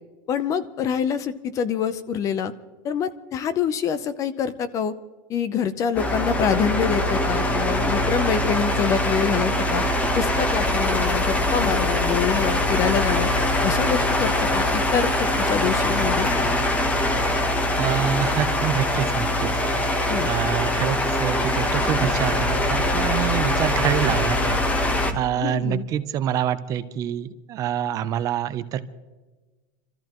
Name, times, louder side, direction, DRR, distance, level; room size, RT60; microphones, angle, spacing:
voice 1, 0.3-2.5 2.8-4.9 5.3-9.8 10.1-13.3 13.6-15.1 15.5-16.3 20.1-20.3 25.4-25.8, left 7 dB, 30° left, 14 dB, 0.7 m, -25 dB
sound 1, 6.0-25.1, left 1 dB, 10° left, 1.0 m, -23 dB
sound 2, 10.6-16.4, right 2 dB, 55° left, 3.7 m, -44 dB
voice 2, 17.8-19.5 20.3-24.6 24.9-28.8, right 10 dB, 30° right, 12 dB, 0.6 m, -26 dB
26.5 x 14.0 x 3.0 m, 1.2 s
supercardioid pair, 155°, 12 cm